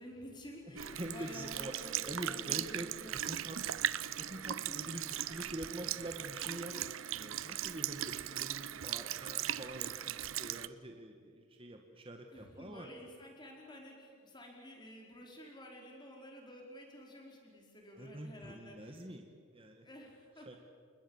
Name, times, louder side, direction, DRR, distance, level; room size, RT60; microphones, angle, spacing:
voice 1, 0.0-3.7 4.7-5.3 6.6-7.4 12.3-19.1 19.8-20.6, equal, 20° left, 0 dB, 4.6 m, -52 dB
Sink (filling or washing) / Liquid, 0.8-10.7, right 11 dB, 70° right, 0.6 m, -38 dB
voice 2, 1.0-1.7 2.0-3.7 4.1-5.0 5.3-6.7 7.2-12.9 17.9-19.9 20.4-20.6, right 1 dB, 25° right, 3 dB, 1.7 m, -45 dB
29.5 x 20.5 x 7.3 m, 2.1 s
head